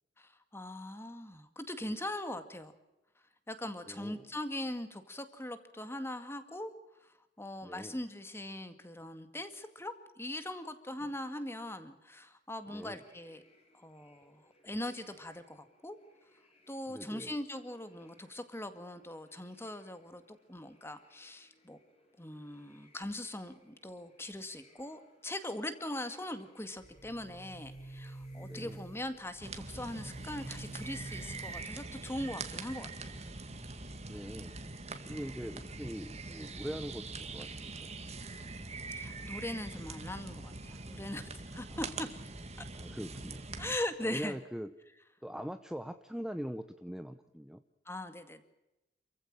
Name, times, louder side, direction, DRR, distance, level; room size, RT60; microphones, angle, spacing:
voice 1, 0.2-2.7 3.5-6.7 7.4-13.4 13.7-16.0 16.7-21.8 22.2-33.1 39.0-42.1 43.6-44.4 47.9-48.4, left 1 dB, 15° left, 10 dB, 2.0 m, -41 dB
voice 2, 3.9-4.3 7.6-8.0 12.7-13.0 16.9-17.4 28.4-28.8 34.0-34.5 35.0-37.9 41.7-41.9 42.7-43.4 44.0-44.7 45.2-47.6, equal, 5° right, 9 dB, 0.9 m, -42 dB
sound 1, 12.6-29.2, left 1 dB, 35° left, 6.5 m, -67 dB
Boom, 26.8-32.6, right 2 dB, 55° left, 6.2 m, -49 dB
sound 2, 29.4-43.8, right 3 dB, 35° right, 2.2 m, -43 dB
28.0 x 15.5 x 8.9 m, 0.95 s
head